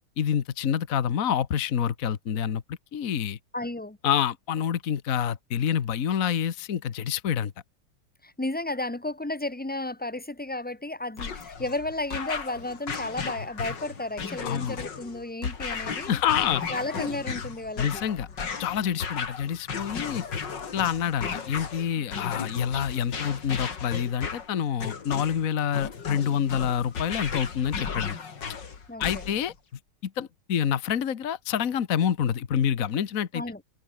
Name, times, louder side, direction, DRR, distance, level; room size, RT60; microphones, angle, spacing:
voice 1, 0.2-3.4 4.0-7.5 14.4-14.8 16.1-16.6 17.8-18.3 18.6-20.2 20.7-28.2 29.0-29.5 30.0-33.4, left 8 dB, 50° left, 1.5 m, -27 dB
voice 2, 3.5-4.0 8.2-16.2 16.7-18.0 28.9-29.3 33.3-33.6, left 2 dB, 5° left, 0.8 m, -33 dB
sound 1, 11.2-29.6, left 6 dB, 75° left, 3.0 m, -35 dB
omnidirectional pair, 1.9 m